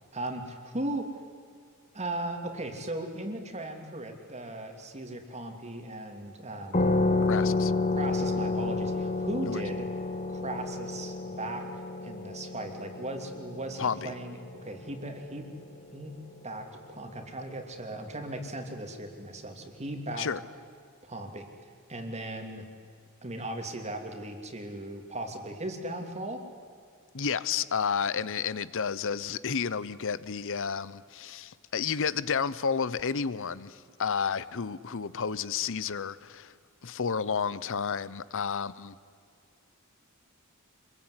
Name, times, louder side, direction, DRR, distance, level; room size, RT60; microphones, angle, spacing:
voice 1, 0.1-1.1 1.9-7.1 8.0-9.9 10.3-15.5 15.9-16.1 16.4-20.3 21.0-21.5 21.9-22.6 23.2-26.4 28.2-28.3, right 1 dB, 30° right, 2.8 m, -37 dB
sound 1, 6.7-15.9, left 3 dB, 30° left, 1.5 m, -30 dB
voice 2, 7.3-7.7 9.4-9.6 13.8-14.1 20.2-20.4 27.1-36.5 36.8-39.0, left 6 dB, 60° left, 0.8 m, -31 dB
26.0 x 22.0 x 9.7 m
head